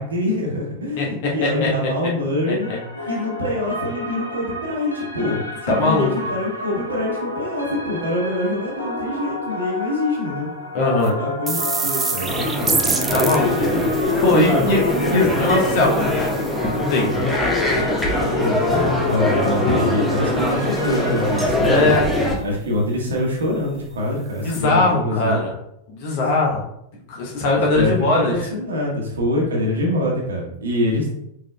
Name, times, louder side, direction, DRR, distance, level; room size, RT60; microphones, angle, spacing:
voice 1, 0.0-2.7 3.1-10.5 11.1-13.3 13.5-13.8 18.4-25.5 26.1-26.3 27.7-31.1, left 1 dB, 70° right, -2 dB, 1.1 m, -25 dB
voice 2, 2.5-2.8 5.7-6.1 10.7-11.1 13.1-13.8 14.2-16.4 16.7-17.3 19.6-19.7 21.6-22.1 24.4-25.5 25.9-26.6 27.1-28.5, left 2 dB, 50° left, -2 dB, 1.0 m, -20 dB
sound 1, 2.6-21.5, left 2 dB, 85° left, 0.8 m, -31 dB
sound 2, 11.0-11.1 11.5-17.0 24.0-24.1 24.4-24.6, right 4 dB, 15° right, 0.5 m, -28 dB
sound 3, 12.2-22.4, left 1 dB, 5° left, 1.0 m, -22 dB
4.9 x 3.9 x 2.3 m, 0.77 s
figure-of-eight pair, 90°, 0 cm